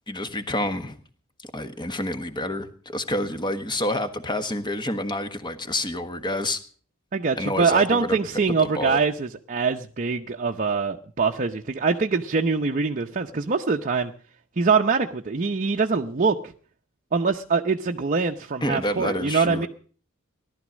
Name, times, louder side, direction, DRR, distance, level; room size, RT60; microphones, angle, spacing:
voice 1, 0.1-1.0 1.5-6.6 7.3-8.2 8.6-9.0 18.6-19.7, left 1 dB, 20° left, 9 dB, 1.4 m, -28 dB
voice 2, 7.1-14.1 14.6-16.5 17.1-19.7, right 4 dB, 40° right, 3 dB, 0.7 m, -23 dB
17.5 x 12.0 x 6.3 m, 0.43 s
head